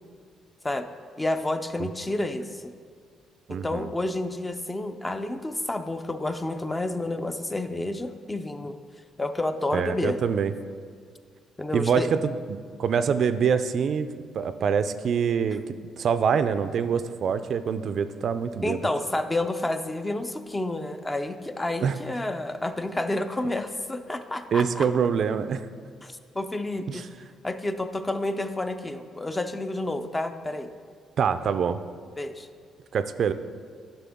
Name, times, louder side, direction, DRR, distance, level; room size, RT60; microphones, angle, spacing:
voice 1, 1.2-2.7 3.5-8.7 9.2-10.2 11.6-12.1 18.6-24.9 26.0-27.0 27.4-30.7 32.2-32.5, left 2 dB, 15° left, 9 dB, 0.5 m, -30 dB
voice 2, 3.5-3.9 9.7-10.5 11.7-18.8 21.8-22.0 24.5-25.7 26.9-27.1 31.2-31.8 32.9-33.3, right 7 dB, 60° right, 11 dB, 0.4 m, -25 dB
9.9 x 6.1 x 3.5 m, 2.1 s
cardioid pair, 90°, 0 cm